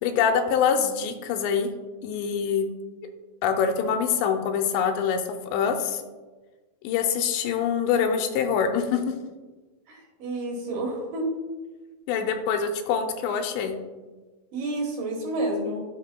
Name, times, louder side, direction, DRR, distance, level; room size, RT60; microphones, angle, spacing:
voice 1, 0.0-1.7 2.0-2.7 3.4-6.0 6.8-9.0 12.1-13.8, left 7 dB, 85° left, 6 dB, 2.7 m, -25 dB
voice 2, 9.9-11.3 14.5-15.9, right 2 dB, 60° right, 0 dB, 2.4 m, -29 dB
13.0 x 5.3 x 2.2 m, 1.3 s
omnidirectional pair, 5.1 m